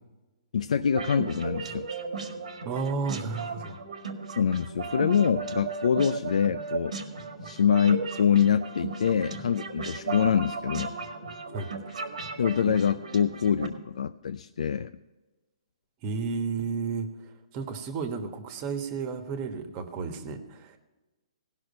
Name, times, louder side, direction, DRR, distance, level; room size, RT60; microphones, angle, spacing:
voice 1, 0.5-1.9 4.4-6.9 7.4-10.9 12.4-14.9, left 7 dB, 80° left, 9 dB, 0.4 m, -25 dB
sound 1, 0.9-13.7, right 4 dB, 85° right, 1.8 m, -36 dB
voice 2, 2.6-3.8 9.1-9.2 11.5-11.7 16.0-17.1 17.5-20.7, right 4 dB, 30° right, 8 dB, 1.3 m, -32 dB
18.0 x 6.1 x 5.4 m, 1.1 s
hypercardioid pair, 160°, 4 cm